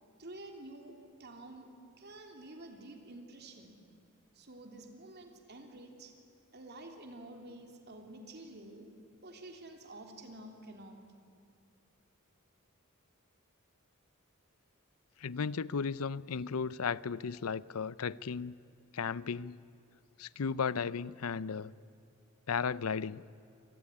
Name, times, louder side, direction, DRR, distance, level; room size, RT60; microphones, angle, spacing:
voice 1, 0.2-3.8 4.3-6.1 6.5-8.9 9.2-11.0, right 1 dB, 50° right, 3.3 m, -50 dB
voice 2, 15.2-18.5 18.9-19.6 20.2-21.7 22.5-23.3, left 5 dB, 85° left, 0.6 m, -35 dB
27.5 x 20.5 x 10.0 m
head